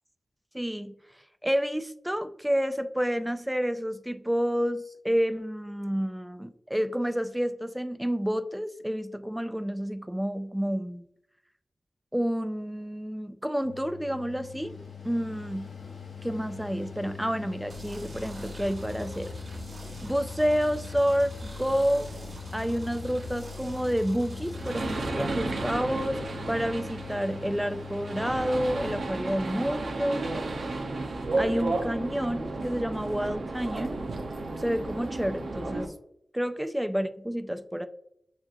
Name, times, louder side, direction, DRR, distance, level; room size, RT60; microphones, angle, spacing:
voice 1, 0.5-0.9 1.4-11.1 12.1-15.7 16.2-19.3 20.0-22.1 22.5-30.2 31.4-34.0 34.6-35.9 36.3-37.9, equal, 5° right, 10 dB, 0.3 m, -29 dB
Mechanical fan, 13.6-29.0, left 6 dB, 85° left, 1.0 m, -43 dB
sound 1, 17.7-25.1, left 1 dB, 45° right, 1.3 m, -42 dB
sound 2, 24.5-35.9, right 2 dB, 65° right, 0.7 m, -33 dB
7.0 x 2.9 x 2.5 m, 0.74 s
wide cardioid pair, 145°, 0 cm